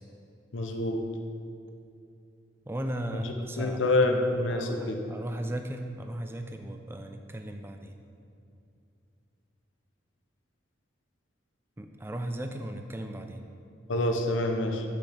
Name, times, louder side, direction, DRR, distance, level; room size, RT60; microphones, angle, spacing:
voice 1, 0.5-1.0 3.1-5.0 13.9-14.8, left 2 dB, 80° left, 4 dB, 0.6 m, -27 dB
voice 2, 2.7-7.9 11.8-13.4, right 1 dB, 10° right, 6 dB, 0.3 m, -37 dB
7.7 x 6.6 x 3.3 m, 2.6 s
head